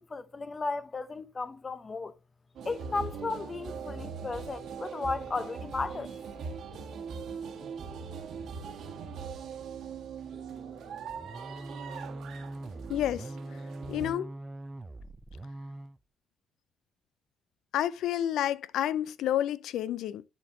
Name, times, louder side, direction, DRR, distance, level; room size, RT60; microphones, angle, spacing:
voice 1, 0.0-2.2 2.6-6.2, left 3 dB, 30° left, 0.7 m, -35 dB
sound 1, 2.6-14.1, right 6 dB, 75° right, 1.5 m, -41 dB
sound 2, 11.1-16.0, right 2 dB, 20° right, 0.5 m, -42 dB
voice 2, 12.9-13.3 13.9-14.3 17.7-20.2, left 11 dB, 80° left, 0.4 m, -30 dB
10.5 x 4.3 x 2.7 m
cardioid pair, 90°, 0 cm